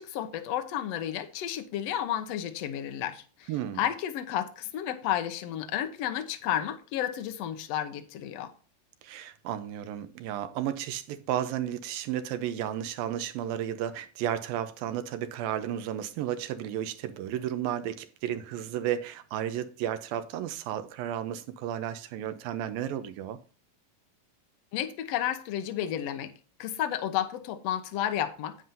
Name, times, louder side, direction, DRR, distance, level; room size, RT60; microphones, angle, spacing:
voice 1, 0.0-3.5 3.8-8.5 24.7-26.3 26.6-28.6, left 11 dB, 70° left, 1.6 m, -32 dB
voice 2, 3.5-3.9 9.0-23.4, right 11 dB, 85° right, 2.6 m, -33 dB
9.9 x 9.3 x 2.8 m
omnidirectional pair, 4.1 m